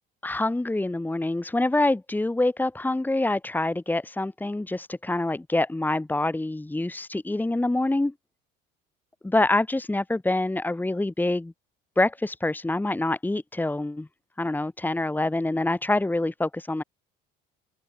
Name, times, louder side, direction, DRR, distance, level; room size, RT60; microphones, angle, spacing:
voice 1, 0.2-8.1 9.2-11.5 12.0-14.1 14.4-16.8, left 2 dB, 10° left, 3.0 m, -26 dB
supercardioid pair, 100°, 21 cm